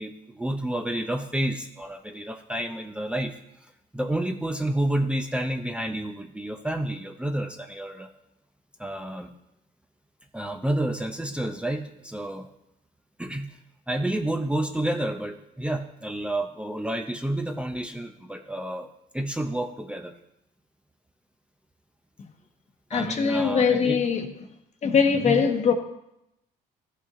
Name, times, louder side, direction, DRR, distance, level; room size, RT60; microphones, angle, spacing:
voice 1, 0.0-3.3 3.9-8.1 8.8-9.3 10.3-12.5 13.2-13.5 13.9-18.9 19.1-20.1 22.9-24.0 25.2-25.4, right 1 dB, 5° right, 0.6 m, -29 dB
voice 2, 22.9-24.3 24.8-25.7, left 6 dB, 40° left, 1.1 m, -22 dB
14.0 x 5.5 x 3.7 m
cardioid pair, 110°, 17 cm